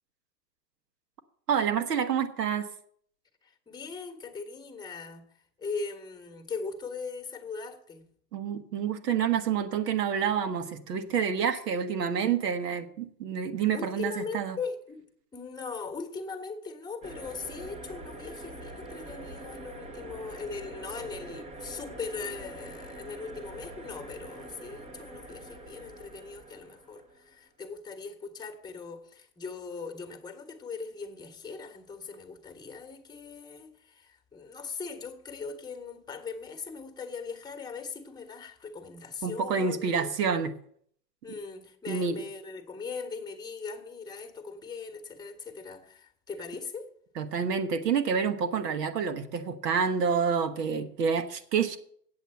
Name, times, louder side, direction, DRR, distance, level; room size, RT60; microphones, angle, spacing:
voice 1, 1.5-2.7 8.3-14.6 39.2-40.5 41.9-42.2 47.2-51.8, right 6 dB, 75° right, 1.5 m, -28 dB
voice 2, 3.4-8.1 13.7-15.1 15.3-40.5 41.2-46.9, left 4 dB, 10° left, 1.3 m, -40 dB
sound 1, 17.0-27.3, right 2 dB, 15° right, 0.7 m, -44 dB
8.2 x 7.9 x 7.7 m
hypercardioid pair, 125°, 48 cm